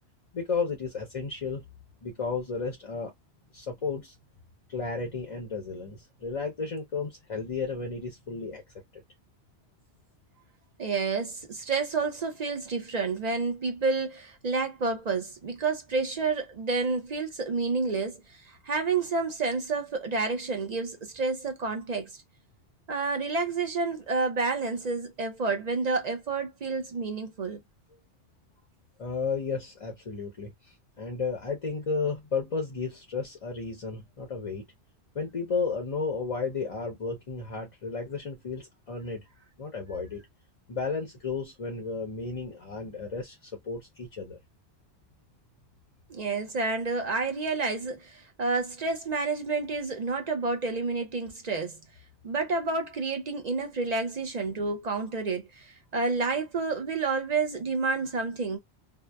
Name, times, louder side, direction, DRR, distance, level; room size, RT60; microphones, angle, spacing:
voice 1, 0.3-1.7 2.0-3.1 3.5-4.1 4.7-8.6 8.9-9.0 29.0-34.6 35.1-39.3 39.6-40.2 40.7-44.4, left 4 dB, 40° left, 0.6 m, -33 dB
voice 2, 10.8-22.1 22.9-27.6 46.1-51.8 52.2-58.6, right 4 dB, 50° right, 0.6 m, -29 dB
2.7 x 2.0 x 2.2 m
omnidirectional pair, 1.1 m